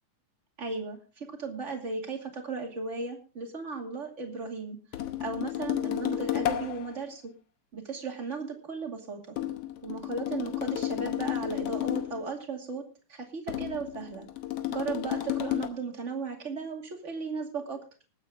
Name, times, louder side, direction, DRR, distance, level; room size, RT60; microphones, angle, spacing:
voice 1, 0.6-4.8 5.2-7.3 7.7-9.4 9.8-14.3 14.7-17.8, right 4 dB, 25° right, 2 dB, 2.4 m, -36 dB
sound 1, 4.9-7.0 9.4-12.3 13.5-15.7, left 13 dB, 65° left, 1.7 m, -32 dB
20.5 x 8.9 x 3.7 m, 0.36 s
omnidirectional pair, 3.6 m